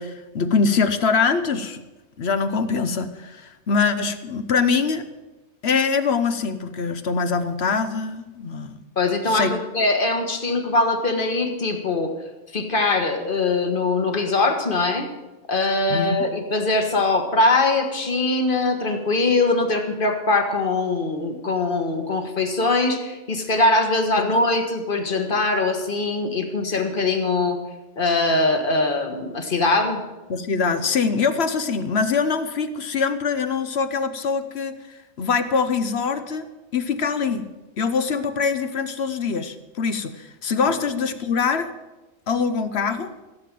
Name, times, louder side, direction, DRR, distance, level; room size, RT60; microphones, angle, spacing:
voice 1, 0.0-1.8 2.2-5.0 5.6-8.8 9.3-9.5 15.9-16.2 24.2-24.3 30.3-36.5 36.7-37.5 37.8-41.7 42.3-43.1, left 5 dB, 55° left, 11 dB, 0.9 m, -23 dB
voice 2, 9.0-9.5 9.7-12.1 12.5-15.1 15.5-27.6 28.0-30.0, left 2 dB, 40° left, 5 dB, 1.6 m, -22 dB
15.0 x 7.6 x 7.5 m, 1.1 s
omnidirectional pair, 1.4 m